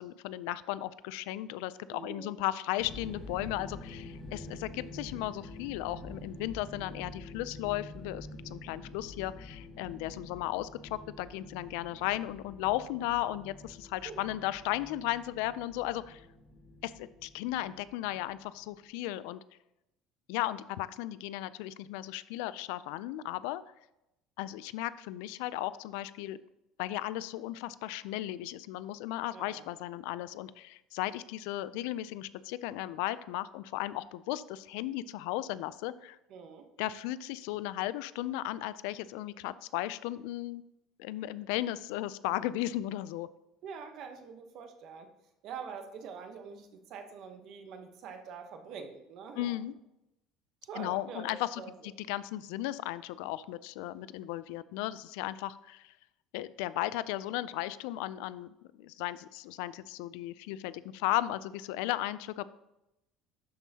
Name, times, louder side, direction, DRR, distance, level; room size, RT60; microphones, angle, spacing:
voice 1, 0.0-16.2 16.8-19.4 20.3-23.6 24.4-26.4 26.8-36.2 36.8-40.6 41.0-43.3 49.4-49.7 50.8-55.9 56.3-62.5, left 15 dB, 80° left, 16 dB, 0.3 m, -35 dB
voice 2, 1.9-2.3 14.0-14.3 29.3-29.7 36.3-36.7 43.6-45.1 45.4-49.6 50.6-51.9, right 6 dB, 45° right, 6 dB, 0.9 m, -45 dB
sound 1, 2.8-18.7, left 2 dB, 15° left, 1.6 m, -47 dB
12.0 x 5.5 x 2.8 m, 0.89 s
cardioid pair, 175°, 0 cm